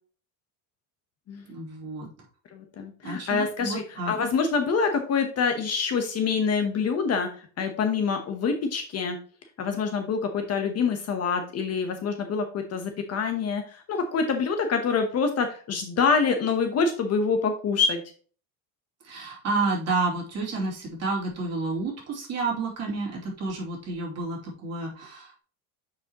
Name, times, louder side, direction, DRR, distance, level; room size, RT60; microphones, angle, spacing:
voice 1, 1.5-2.1 3.0-4.1 19.0-25.4, right 3 dB, 35° right, -2 dB, 2.9 m, -30 dB
voice 2, 2.5-7.3 7.6-9.2 9.6-18.0, left 5 dB, 35° left, 6 dB, 0.9 m, -26 dB
8.4 x 5.0 x 2.9 m, 0.41 s
cardioid pair, 145°, 44 cm